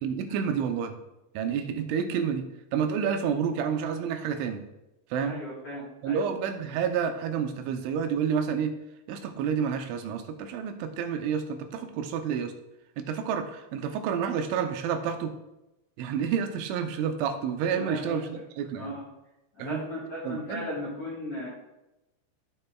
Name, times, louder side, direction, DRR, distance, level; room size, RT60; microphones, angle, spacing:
voice 1, 0.0-0.9 1.3-2.5 2.7-4.6 5.1-5.4 6.0-8.7 9.1-12.5 13.0-15.3 16.0-18.9 19.6-19.8 20.2-20.6, right 7 dB, 90° right, 6 dB, 3.2 m, -29 dB
voice 2, 5.2-6.2 17.8-18.3 18.8-19.0 19.6-21.5, left 1 dB, 70° left, -6 dB, 1.4 m, -36 dB
15.5 x 5.5 x 2.3 m, 0.94 s
omnidirectional pair, 5.3 m